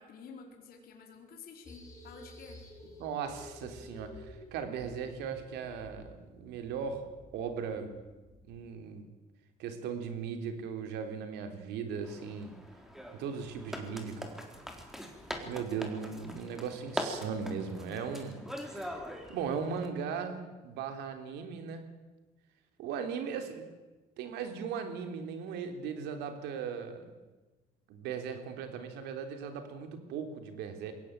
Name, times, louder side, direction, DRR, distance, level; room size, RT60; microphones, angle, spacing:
voice 1, 0.0-2.6, left 5 dB, 65° left, 2 dB, 4.4 m, -50 dB
sound 1, 1.7-8.7, left 1 dB, 20° left, 7.3 m, -52 dB
voice 2, 3.0-7.1 7.3-8.0 8.5-9.1 9.6-12.5 13.1-14.4 15.4-19.0 19.3-21.9 22.8-23.7 24.2-27.1 27.9-30.9, right 6 dB, 85° right, 7 dB, 3.5 m, -38 dB
sound 2, 12.0-19.9, equal, ahead, 3.7 m, -42 dB
22.0 x 17.0 x 9.1 m, 1.2 s
cardioid pair, 110°, 17 cm